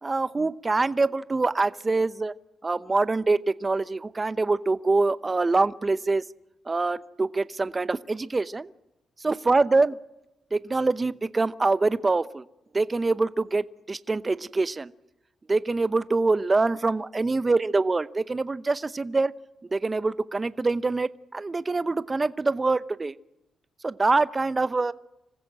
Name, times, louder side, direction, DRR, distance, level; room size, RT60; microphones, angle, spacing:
voice 1, 0.0-2.3 2.6-6.2 6.7-8.7 9.2-10.0 10.5-12.4 12.7-14.9 15.5-19.3 19.7-23.1 23.8-24.9, right 3 dB, 30° right, 15 dB, 0.8 m, -25 dB
26.0 x 15.5 x 7.5 m, 0.91 s
supercardioid pair, 55°, 0 cm